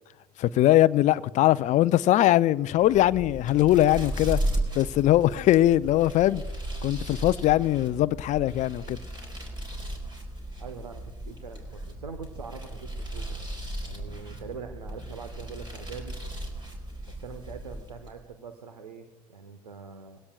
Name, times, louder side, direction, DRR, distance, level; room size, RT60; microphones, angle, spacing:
voice 1, 0.4-4.4 4.8-6.4 6.8-9.0, left 14 dB, 40° left, 0.5 m, -21 dB
sound 1, 2.7-18.2, right 1 dB, 25° right, 4.1 m, -36 dB
voice 2, 10.6-13.4 13.8-16.1 17.1-20.2, right 5 dB, 85° right, 1.2 m, -43 dB
21.5 x 17.0 x 2.4 m
figure-of-eight pair, 75°, 20 cm